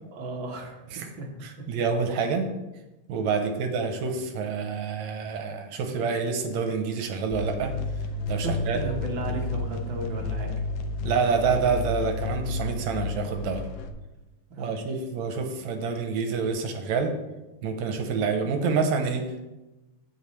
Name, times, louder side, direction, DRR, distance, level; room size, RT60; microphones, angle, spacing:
voice 1, 0.1-1.7 8.4-10.6 14.5-15.0, right 2 dB, 55° right, 1 dB, 1.6 m, -35 dB
voice 2, 1.7-2.5 3.1-7.7 8.3-8.8 11.0-13.7 14.6-17.1 17.6-19.4, right 5 dB, 80° right, 5 dB, 2.1 m, -27 dB
sound 1, 7.3-13.9, left 3 dB, 85° left, 2.1 m, -31 dB
15.5 x 5.5 x 3.2 m, 1.0 s
omnidirectional pair, 3.3 m